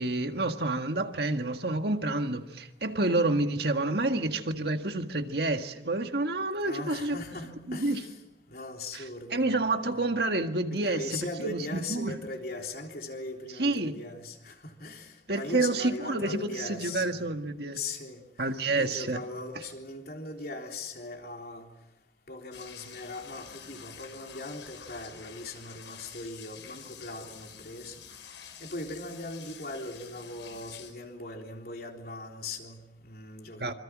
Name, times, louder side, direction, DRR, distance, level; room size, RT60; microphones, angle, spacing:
voice 1, 0.0-7.2 7.7-8.0 9.3-11.0 11.4-12.1 13.6-13.9 15.3-17.8 18.4-19.2 33.6-33.7, right 2 dB, 60° right, 1.7 m, -28 dB
voice 2, 6.6-8.2 8.5-9.5 9.8-10.1 10.7-17.3 17.7-18.5 18.8-21.7 22.3-28.0 28.6-33.7, left 2 dB, 55° left, 3.6 m, -40 dB
sound 1, 22.5-30.9, left 7 dB, 80° left, 5.3 m, -48 dB
27.0 x 25.5 x 6.2 m
head